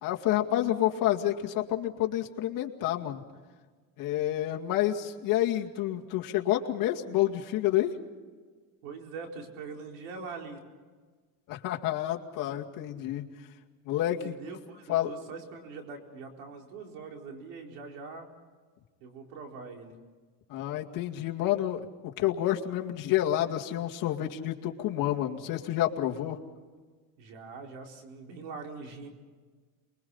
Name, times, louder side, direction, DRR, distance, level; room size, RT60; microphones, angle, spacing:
voice 1, 0.0-3.2 4.0-7.9 11.5-13.2 13.8-14.4 14.9-15.1 20.5-26.4, left 13 dB, 55° left, 2 dB, 2.3 m, -29 dB
voice 2, 8.8-10.6 14.2-18.3 19.0-19.9 27.2-29.1, right 4 dB, 90° right, 2 dB, 4.5 m, -43 dB
28.5 x 22.0 x 5.6 m, 1.5 s
cardioid pair, 140°, 39 cm